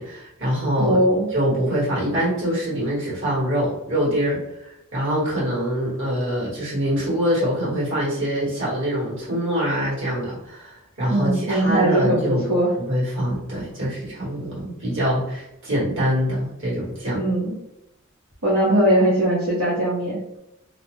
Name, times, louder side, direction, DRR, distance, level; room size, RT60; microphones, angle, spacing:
voice 1, 0.0-1.0 1.3-12.4 12.9-17.2, equal, 60° right, -7 dB, 1.5 m, -24 dB
voice 2, 0.8-1.3 11.1-12.2 12.5-12.7 17.1-17.6 18.4-20.2, right 1 dB, 80° right, -8 dB, 0.8 m, -20 dB
2.6 x 2.1 x 3.1 m, 0.86 s
head